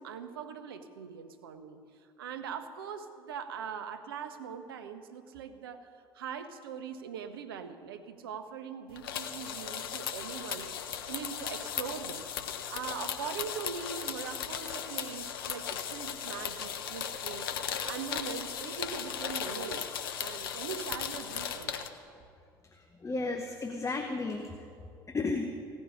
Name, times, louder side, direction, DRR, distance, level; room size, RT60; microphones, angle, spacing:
voice 1, 0.0-1.8 2.2-10.7 11.1-12.3 12.7-21.8, right 7 dB, 80° right, 9 dB, 0.7 m, -41 dB
sound 1, 9.0-21.9, left 8 dB, 80° left, 0.7 m, -37 dB
voice 2, 22.7-24.7 25.1-25.6, left 3 dB, 25° left, 5 dB, 0.9 m, -34 dB
16.0 x 5.4 x 9.7 m, 2.4 s
figure-of-eight pair, 55°, 12 cm